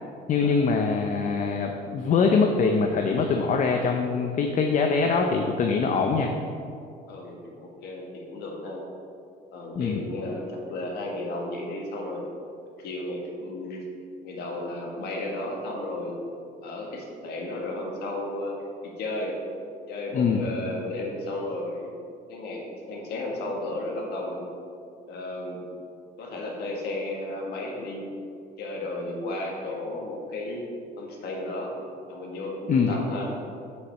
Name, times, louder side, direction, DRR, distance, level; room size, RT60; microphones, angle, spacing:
voice 1, 0.3-6.3 9.7-10.0 20.1-20.4 32.7-32.9, left 5 dB, 45° left, 3 dB, 0.6 m, -23 dB
voice 2, 7.1-8.8 9.5-12.2 12.8-13.8 14.2-16.2 16.6-18.6 18.8-19.4 19.9-21.9 22.3-24.5 25.1-25.6 26.2-28.1 28.6-30.7 31.0-31.7 32.1-33.3, left 1 dB, 70° left, -1 dB, 1.7 m, -33 dB
6.5 x 5.7 x 5.4 m, 2.4 s
cardioid pair, 110°, 17 cm